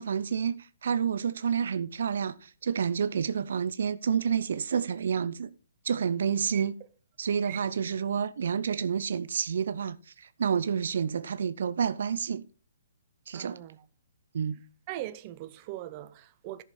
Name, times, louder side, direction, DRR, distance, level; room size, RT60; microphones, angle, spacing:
voice 1, 0.0-5.5 5.8-6.7 7.2-12.4 13.3-13.6 14.3-14.6, right 7 dB, 70° right, 0.6 m, -29 dB
voice 2, 13.3-13.8 14.9-16.6, right 14 dB, 30° right, 0.8 m, -40 dB
13.5 x 6.4 x 4.3 m
hypercardioid pair, 150°, 0 cm